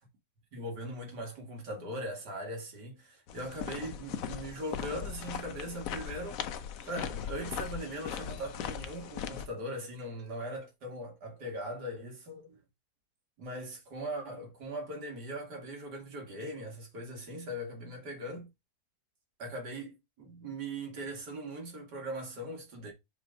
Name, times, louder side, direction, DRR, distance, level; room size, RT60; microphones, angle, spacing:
voice 1, 0.5-12.6 13.4-18.5 19.4-22.9, right 1 dB, 90° right, 2.5 m, -40 dB
sound 1, 3.3-9.5, left 8 dB, 65° left, 1.0 m, -39 dB
5.0 x 4.2 x 5.0 m
omnidirectional pair, 1.7 m